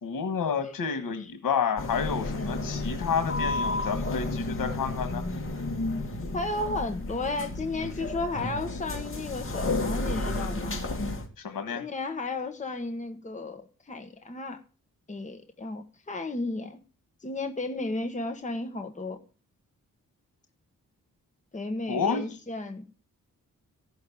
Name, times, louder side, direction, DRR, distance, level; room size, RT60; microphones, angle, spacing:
voice 1, 0.0-5.2 11.4-11.8 21.9-22.2, left 6 dB, 90° left, 8 dB, 1.7 m, -30 dB
sound 1, 1.8-11.3, left 2 dB, 40° left, 2.5 m, -32 dB
voice 2, 6.3-10.8 11.7-14.6 15.1-16.8 17.2-19.2 21.5-22.9, left 2 dB, 20° left, 5 dB, 1.3 m, -33 dB
15.0 x 6.6 x 8.5 m, 0.38 s
wide cardioid pair, 125°, 33 cm